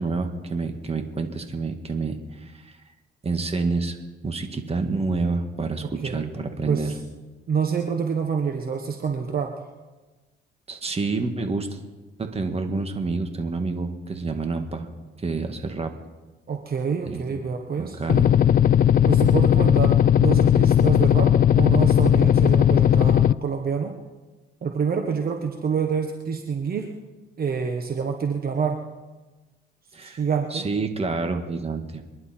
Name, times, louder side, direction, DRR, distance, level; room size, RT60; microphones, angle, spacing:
voice 1, 0.0-2.8 3.2-4.0 4.2-6.9 10.7-11.8 12.2-14.9 15.2-15.9 16.9-17.2 17.8-18.4 29.9-30.2 30.5-32.0, right 3 dB, 30° right, 6 dB, 1.9 m, -28 dB
voice 2, 5.8-6.3 6.7-7.0 7.5-9.7 16.5-18.0 19.0-23.9 24.6-26.9 27.4-28.8 30.0-30.7, right 6 dB, 50° right, 4 dB, 1.4 m, -27 dB
sound 1, 18.1-23.3, left 10 dB, 45° left, 0.4 m, -17 dB
25.5 x 11.0 x 4.5 m, 1.2 s
cardioid pair, 90°, 20 cm